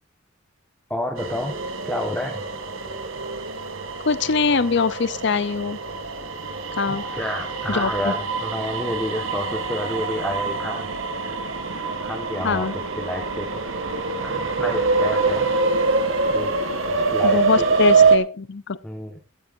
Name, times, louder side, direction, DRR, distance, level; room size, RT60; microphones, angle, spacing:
voice 1, 0.9-1.5 1.8-2.4 6.9-10.9 12.0-12.7 13.0-13.6 14.2-15.5 16.3-16.5 17.1-17.6 18.0-18.1 18.8-19.2, left 1 dB, 5° left, 0 dB, 1.7 m, -29 dB
sound 1, 1.2-18.2, right 4 dB, 75° right, 2.5 m, -24 dB
voice 2, 4.0-5.8 6.8-7.0 7.7-8.1 12.4-12.7 17.2-18.8, left 5 dB, 60° left, 17 dB, 0.7 m, -22 dB
15.5 x 13.5 x 2.7 m, 0.33 s
head